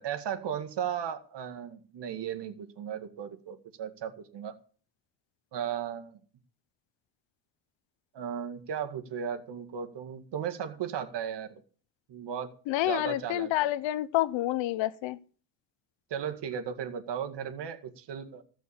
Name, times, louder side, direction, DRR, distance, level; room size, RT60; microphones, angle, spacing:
voice 1, 0.0-4.6 5.5-6.2 8.1-11.6 12.1-12.5 12.9-13.7 16.1-18.4, right 8 dB, 70° right, 2.0 m, -36 dB
voice 2, 12.7-15.2, left 15 dB, 85° left, 0.9 m, -28 dB
16.0 x 6.2 x 8.5 m
cardioid pair, 85°, 44 cm